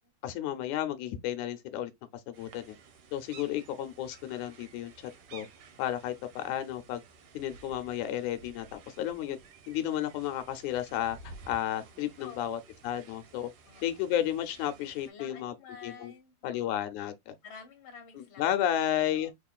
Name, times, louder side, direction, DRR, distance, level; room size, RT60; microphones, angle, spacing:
voice 1, 0.2-1.9 2.3-2.8 3.1-4.9 5.3-5.5 5.8-7.0 7.3-9.4 9.7-13.5 13.8-15.5 15.8-16.1 16.4-17.3 18.2-19.3, left 11 dB, 85° left, 2.2 m, -32 dB
sound 1, 2.3-15.1, right 4 dB, 65° right, 1.5 m, -54 dB
voice 2, 12.2-12.6 13.6-14.0 15.0-17.0 17.4-18.6 18.9-19.3, left 6 dB, 25° left, 1.6 m, -50 dB
5.5 x 3.7 x 2.4 m
omnidirectional pair, 3.4 m